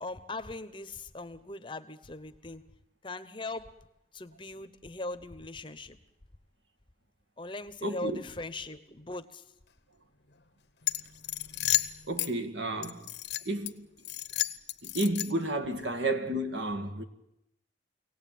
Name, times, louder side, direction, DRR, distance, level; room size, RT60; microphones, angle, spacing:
voice 1, 0.0-2.6 3.0-3.7 4.1-6.0 7.4-9.4, left 2 dB, 25° left, 0.9 m, -40 dB
voice 2, 7.8-8.2 12.1-13.1 13.5-13.9 14.8-17.0, right 1 dB, 75° right, 1.9 m, -31 dB
sound 1, 10.8-12.3 12.8-13.7 14.0-15.5, left 15 dB, 65° left, 0.9 m, -32 dB
24.0 x 18.0 x 9.3 m
head